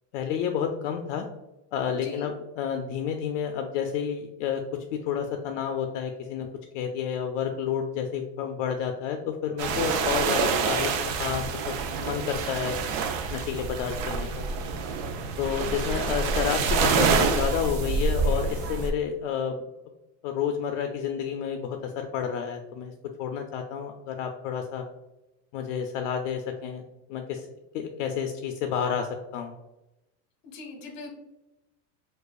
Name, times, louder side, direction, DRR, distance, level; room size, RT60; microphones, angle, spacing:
voice 1, 0.1-1.3 1.7-4.6 4.9-6.5 6.7-12.8 13.3-14.5 15.4-19.6 20.2-22.9 23.2-24.8 25.5-26.8 27.1-27.5 27.7-29.5, left 8 dB, 75° left, 4 dB, 0.5 m, -30 dB
voice 2, 1.9-2.3 10.4-10.6 30.4-31.1, left 3 dB, 45° left, 3 dB, 1.0 m, -42 dB
sound 1, 9.6-18.9, right 5 dB, 55° right, 0.5 m, -27 dB
4.6 x 2.4 x 2.3 m, 0.98 s
cardioid pair, 170°, 37 cm